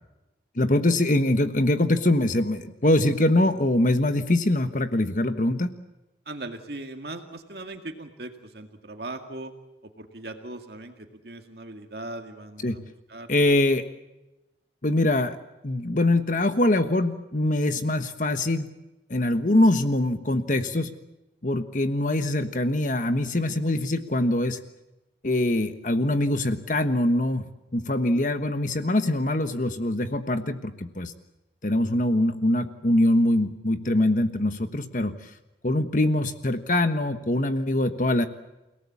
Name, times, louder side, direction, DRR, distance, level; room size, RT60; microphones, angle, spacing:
voice 1, 0.5-5.7 12.6-12.8 13.3-13.9 14.8-15.4 15.6-18.7 19.1-20.9 21.4-24.6 25.2-27.5 27.7-31.1 31.6-35.3 35.6-38.3, left 1 dB, 45° left, 9 dB, 1.3 m, -23 dB
voice 2, 6.3-9.5 10.0-13.5, right 2 dB, 60° right, 5 dB, 2.1 m, -39 dB
29.5 x 18.5 x 8.5 m, 0.98 s
head